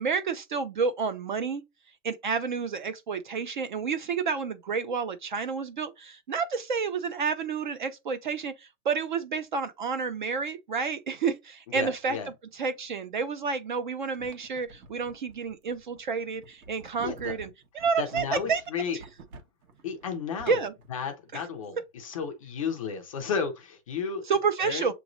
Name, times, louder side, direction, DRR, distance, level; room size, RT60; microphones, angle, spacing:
voice 1, 0.0-1.6 2.0-12.2 12.5-17.5 17.7-18.6 20.5-20.7 24.2-24.9, right 5 dB, 35° right, 0.4 m, -30 dB
voice 2, 11.7-12.3 17.0-17.4 18.0-19.0 19.8-20.6 20.9-24.3 24.6-24.9, left 6 dB, 25° left, 0.4 m, -33 dB
sound 1, 14.1-20.9, right 3 dB, 80° right, 1.4 m, -49 dB
6.9 x 3.0 x 2.5 m
hypercardioid pair, 160°, 44 cm